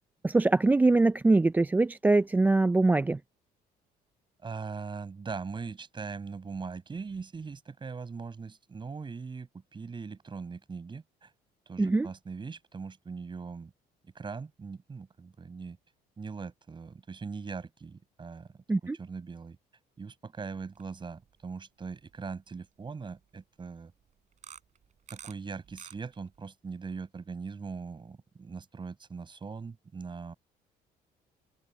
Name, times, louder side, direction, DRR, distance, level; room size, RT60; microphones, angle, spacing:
voice 1, 0.2-3.2 11.8-12.1 18.7-19.0, right 2 dB, 10° right, 0.3 m, -23 dB
voice 2, 4.4-11.3 11.7-13.7 14.0-15.8 16.2-18.6 19.0-19.6 20.0-23.9 25.1-30.3, right 5 dB, 30° right, 5.8 m, -40 dB
sound 1, 20.6-20.9 21.3-21.4 22.1-22.2 24.3-25.3 25.6-26.4, right 8 dB, 45° right, 4.9 m, -48 dB
cardioid pair, 110°, 17 cm